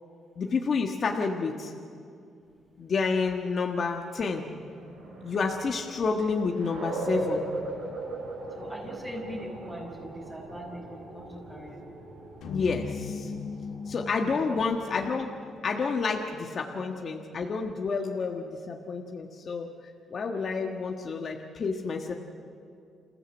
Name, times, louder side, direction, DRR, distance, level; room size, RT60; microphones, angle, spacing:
voice 1, 0.4-1.7 2.8-4.5 5.2-7.4 12.5-13.3 13.8-15.3 15.6-19.7 20.1-22.1, left 4 dB, 50° left, 2 dB, 1.6 m, -29 dB
sound 1, 4.2-15.6, right 2 dB, 85° right, 6.8 m, -39 dB
voice 2, 8.5-11.8 14.3-14.6 16.6-17.2, equal, 10° right, -6 dB, 5.6 m, -42 dB
sound 2, 12.4-16.7, left 5 dB, 80° left, 1.9 m, -39 dB
28.0 x 16.0 x 7.9 m, 2.4 s
cardioid pair, 90°, 0 cm